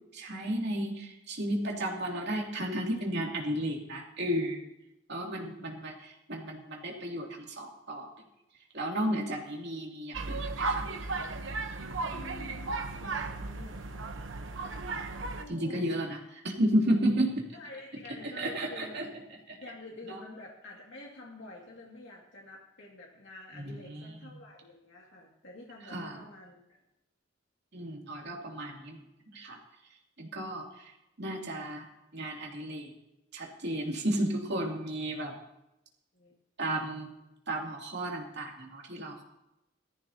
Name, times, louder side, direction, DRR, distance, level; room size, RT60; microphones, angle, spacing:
voice 1, 0.1-4.6 5.1-8.1 8.7-10.9 15.5-17.5 18.2-19.1 19.5-19.6 20.1-20.2 23.6-24.3 25.9-26.2 27.7-29.0 29.3-29.6 30.2-30.9 31.2-31.9 32.1-32.9 33.3-35.3 36.6-37.1 37.5-39.2, right 1 dB, 60° right, -1 dB, 2.8 m, -33 dB
voice 2, 5.2-5.8 12.1-14.1 15.3-15.9 17.5-19.1 19.6-26.8 36.1-36.4, left 2 dB, 70° left, -2 dB, 2.4 m, -49 dB
sound 1, 10.1-15.4, right 3 dB, 80° right, 1.0 m, -35 dB
18.5 x 14.0 x 2.9 m, 0.88 s
head